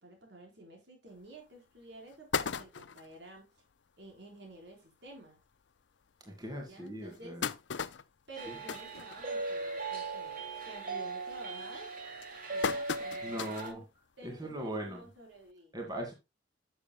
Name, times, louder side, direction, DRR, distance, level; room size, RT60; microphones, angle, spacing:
voice 1, 0.0-3.5 4.0-5.4 6.6-7.4 8.3-11.9 12.5-13.8 14.2-15.7, right 1 dB, 75° right, 4.2 m, -51 dB
sound 1, 1.2-1.3 1.8-1.9 2.1-3.2 3.7-3.8 4.1-4.2 4.5-4.7 5.4-5.5 6.0-6.1 6.9-9.7 10.1-10.4 10.7-11.1 11.8-13.8 14.2-14.3 15.5-15.6, left 6 dB, 90° left, 0.6 m, -37 dB
voice 2, 6.2-7.5 13.2-13.8 14.2-15.1 15.7-16.1, right 1 dB, 25° right, 2.2 m, -39 dB
sound 2, 8.4-13.7, right 3 dB, 50° right, 2.6 m, -39 dB
12.0 x 7.2 x 2.2 m
head